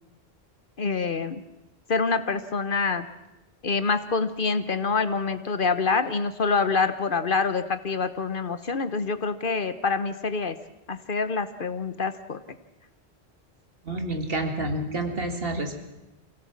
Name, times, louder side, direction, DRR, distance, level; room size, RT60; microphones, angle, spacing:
voice 1, 0.8-1.4 1.9-3.1 3.6-10.6 10.9-12.6, left 4 dB, 55° left, 12 dB, 1.1 m, -26 dB
voice 2, 13.8-15.8, right 1 dB, 60° right, 5 dB, 2.4 m, -29 dB
24.5 x 17.5 x 7.4 m, 0.98 s
omnidirectional pair, 1.1 m